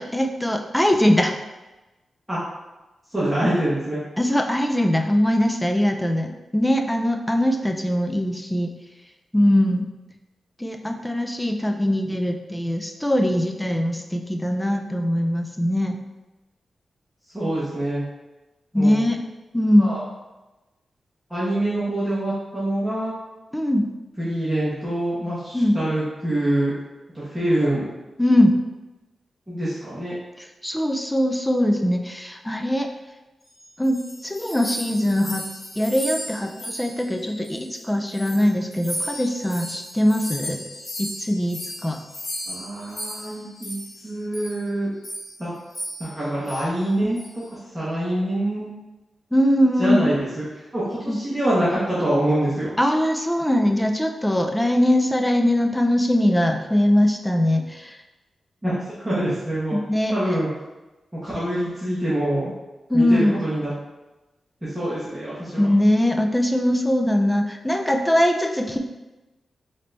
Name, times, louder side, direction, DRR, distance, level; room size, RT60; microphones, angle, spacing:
voice 1, 0.0-1.3 4.2-8.7 9.3-9.9 10.6-16.0 18.7-19.3 19.5-19.9 23.5-23.9 25.5-25.8 28.2-28.6 30.4-32.9 33.8-35.5 35.8-40.6 41.0-42.0 49.3-50.1 51.1-51.2 52.8-58.0 59.7-60.2 62.9-63.4 65.6-68.8, left 1 dB, 10° left, 4 dB, 0.4 m, -21 dB
voice 2, 3.1-4.0 17.3-18.0 18.7-19.0 19.8-20.0 21.3-23.1 24.2-26.7 27.1-27.9 29.5-30.2 42.5-43.7 44.0-44.9 45.4-45.5 46.0-47.4 47.7-48.7 49.8-50.4 50.7-52.7 58.6-59.7 60.1-60.5 61.1-62.5 62.9-63.7 64.6-65.7, right 1 dB, 10° right, -11 dB, 1.3 m, -25 dB
sound 1, 33.6-37.8 38.1-44.0 44.3-44.6 45.0-45.4 45.7-46.2 46.5-46.7 47.2-47.4, equal, 45° left, 1.0 m, -35 dB
4.1 x 3.3 x 2.6 m, 1.1 s
cardioid pair, 90°, 0 cm